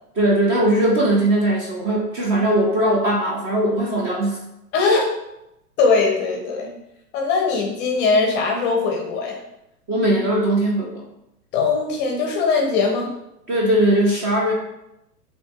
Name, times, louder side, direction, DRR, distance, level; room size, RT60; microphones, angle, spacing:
voice 1, 0.2-4.4 9.9-11.0 13.5-14.5, right 1 dB, 25° right, -1 dB, 0.6 m, -19 dB
voice 2, 4.7-5.1 5.8-6.7 7.1-9.4 11.5-13.1, left 4 dB, 25° left, 0 dB, 0.6 m, -20 dB
6.2 x 2.7 x 2.3 m, 0.86 s
figure-of-eight pair, 110°, 49 cm